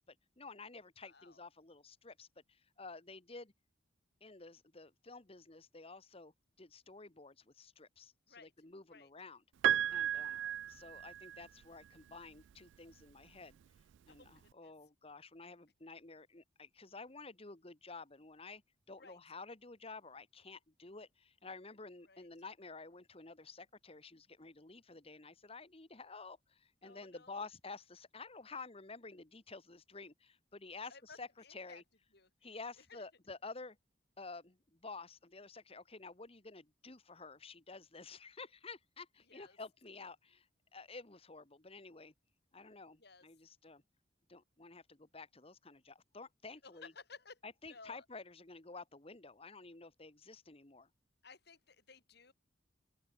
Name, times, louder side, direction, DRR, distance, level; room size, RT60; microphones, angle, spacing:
voice 1, 0.0-3.5 4.2-6.3 6.6-9.4 9.9-10.4 10.7-13.6 14.1-18.6 18.9-31.8 32.4-33.8 34.2-40.5 40.7-42.1 42.5-43.8 44.3-46.9 47.4-50.9, left 3 dB, 30° left, 1.5 m, -51 dB
voice 2, 1.0-1.4 8.3-8.5 8.9-9.1 10.1-10.6 14.2-14.3 14.6-14.7 19.0-19.2 22.1-22.3 26.8-27.5 30.9-31.2 31.4-31.8 32.1-32.3 32.9-33.0 39.3-39.6 43.0-43.3 46.6-47.4 47.7-48.0 51.2-52.3, left 4 dB, 60° left, 4.6 m, -57 dB
Piano, 9.6-11.6 12.9-13.0, right 10 dB, 70° right, 0.3 m, -34 dB
open air
head